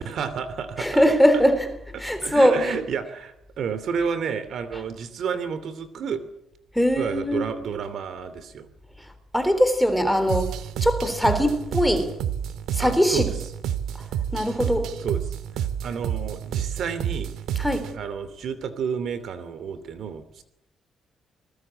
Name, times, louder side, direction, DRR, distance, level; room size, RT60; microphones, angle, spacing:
voice 1, 0.0-1.4 1.9-6.2 7.0-8.7 12.8-13.4 15.0-15.2 15.6-17.3 17.9-20.4, right 6 dB, 55° right, 2.8 m, -31 dB
voice 2, 0.8-1.7 2.0-2.7 6.8-7.5 9.3-10.5 10.8-12.1 12.7-13.3 14.3-15.0 17.6-17.9, equal, ahead, 3.7 m, -21 dB
sound 1, 10.3-18.0, right 9 dB, 85° right, 1.9 m, -29 dB
27.0 x 20.5 x 8.7 m
cardioid pair, 165°, 0 cm